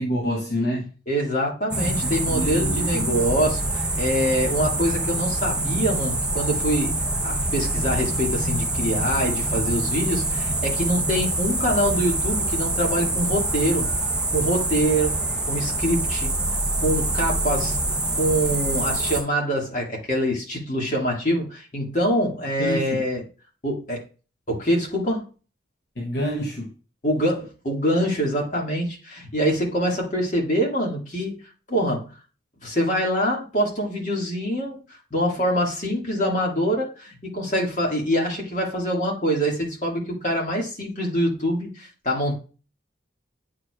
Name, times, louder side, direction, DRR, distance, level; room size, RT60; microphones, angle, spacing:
voice 1, 0.0-0.9 2.0-3.2 22.6-23.1 26.0-26.7, equal, 60° left, 1.0 m, -28 dB
voice 2, 1.1-6.9 7.2-13.9 14.3-16.3 16.8-17.8 18.1-23.2 23.6-24.0 24.5-25.3 27.0-31.4 31.7-32.1 32.6-34.8 35.1-42.4, equal, 40° left, 1.9 m, -25 dB
sound 1, 1.7-19.2, right 2 dB, 5° right, 0.6 m, -25 dB
8.7 x 4.6 x 2.4 m
head